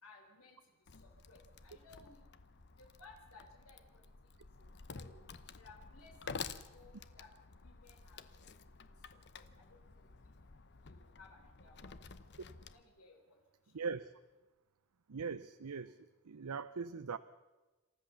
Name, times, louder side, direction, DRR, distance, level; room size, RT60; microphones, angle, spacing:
voice 1, 0.0-2.2 2.8-4.3 4.6-5.2 5.5-7.3 7.6-10.3 10.8-12.1 12.7-13.4 13.6-13.7, left 3 dB, 75° left, 1 dB, 4.0 m, -61 dB
Wood, 0.9-12.8, left 5 dB, 50° left, 0.9 m, -51 dB
voice 2, 13.7-14.1 15.1-16.0 16.2-17.2, right 5 dB, 85° right, 12 dB, 0.7 m, -40 dB
27.5 x 14.0 x 7.0 m, 1.2 s
head